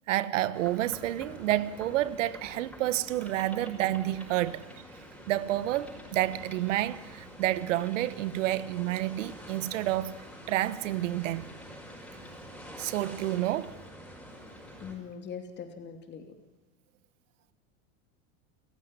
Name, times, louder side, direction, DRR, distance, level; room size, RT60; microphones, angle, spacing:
voice 1, 0.1-4.6 5.3-11.5 12.8-13.7, right 14 dB, 90° right, 1.3 m, -29 dB
sound 1, 0.5-15.0, equal, 5° left, 5.5 m, -47 dB
voice 2, 14.8-16.4, left 7 dB, 30° left, 2.7 m, -41 dB
29.5 x 14.5 x 9.8 m
supercardioid pair, 140°, 36 cm